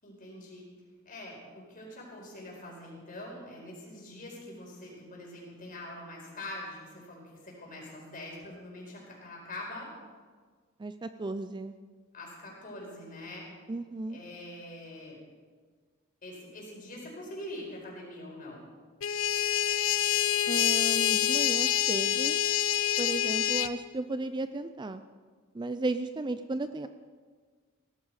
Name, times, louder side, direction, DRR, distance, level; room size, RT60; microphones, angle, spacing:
voice 1, 0.0-0.6 1.0-9.9 12.1-13.5 14.1-15.2 16.2-18.6, left 1 dB, 40° left, -2 dB, 5.1 m, -44 dB
voice 2, 10.8-11.8 13.7-14.2 20.5-22.4 23.0-25.0 25.5-26.9, right 2 dB, 20° right, 11 dB, 0.4 m, -34 dB
sound 1, 19.0-23.7, left 11 dB, 70° left, 0.6 m, -26 dB
17.5 x 14.0 x 4.9 m, 1.5 s
head